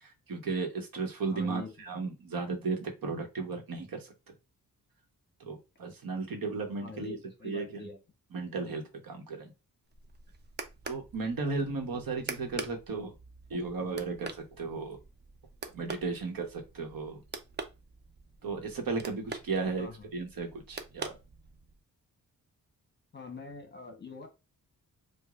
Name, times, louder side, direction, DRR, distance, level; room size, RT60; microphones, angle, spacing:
voice 1, 0.0-4.1 5.4-7.2 7.4-7.8 8.3-9.5 10.8-13.1 13.5-15.0 15.7-17.2 18.4-21.2, right 4 dB, 75° right, 3 dB, 1.1 m, -35 dB
voice 2, 1.3-2.0 6.8-8.0 11.9-12.3 19.8-20.1 23.1-24.3, left 4 dB, 30° left, 4 dB, 1.0 m, -44 dB
sound 1, 9.9-21.8, right 4 dB, 30° right, 0.4 m, -45 dB
4.8 x 2.3 x 2.4 m, 0.27 s
wide cardioid pair, 160°, 35 cm